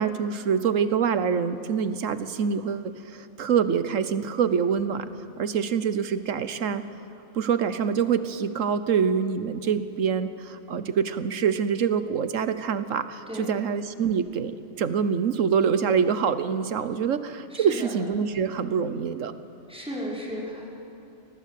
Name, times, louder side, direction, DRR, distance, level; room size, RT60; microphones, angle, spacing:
voice 1, 0.0-5.1 5.4-6.8 7.3-19.3, right 7 dB, 75° right, 12 dB, 1.4 m, -25 dB
voice 2, 17.5-17.9 19.7-20.6, equal, 5° right, -5 dB, 5.6 m, -35 dB
27.5 x 19.0 x 8.5 m, 2.7 s
omnidirectional pair, 1.4 m